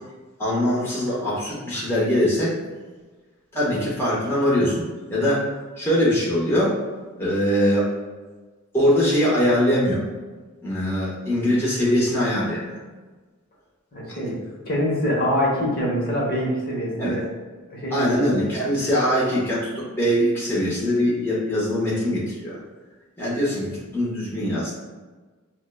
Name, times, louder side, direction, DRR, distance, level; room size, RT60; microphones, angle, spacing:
voice 1, 0.4-2.6 3.5-6.8 7.2-7.9 8.7-10.0 10.6-12.8 14.1-14.3 17.0-17.2 17.9-22.6 23.2-24.7, equal, 10° left, -7 dB, 0.8 m, -22 dB
voice 2, 13.9-14.4 14.7-17.2 17.7-18.1, equal, 45° left, -4 dB, 0.9 m, -24 dB
6.2 x 2.1 x 2.2 m, 1.3 s
head